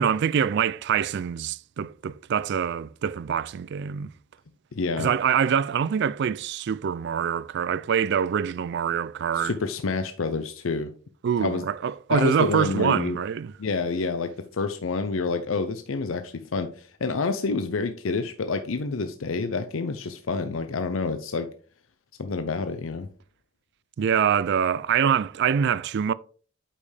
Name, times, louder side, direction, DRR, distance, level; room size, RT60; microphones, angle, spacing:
voice 1, 0.0-4.1 5.0-9.5 11.2-13.5 24.0-26.1, right 7 dB, 55° right, 0.3 m, -25 dB
voice 2, 4.7-5.1 9.3-10.9 11.4-11.7 12.1-13.2 13.6-21.5 22.2-23.1, left 4 dB, 80° left, 0.6 m, -28 dB
8.4 x 5.4 x 3.3 m
head